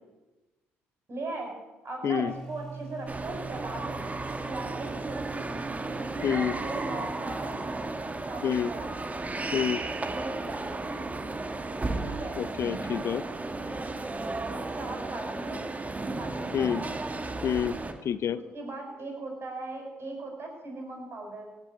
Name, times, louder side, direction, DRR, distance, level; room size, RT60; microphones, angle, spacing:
voice 1, 1.1-1.5 1.8-4.0 4.4-5.5 5.9-7.5 8.3-8.9 10.0-11.0 12.0-12.4 14.7-15.6 16.2-16.6 18.3-21.5, right 2 dB, 45° right, 1 dB, 7.0 m, -38 dB
sound 1, 2.3-9.1, right 4 dB, 10° left, 2.9 m, -45 dB
sound 2, 3.1-17.9, right 2 dB, 25° right, 1.9 m, -34 dB
voice 2, 6.2-6.5 8.4-8.7 9.5-9.8 12.4-13.2 16.5-16.8 17.4-17.8 18.0-18.4, left 9 dB, 55° left, 16 dB, 0.6 m, -27 dB
17.0 x 6.9 x 9.0 m, 1.1 s
hypercardioid pair, 55°, 6 cm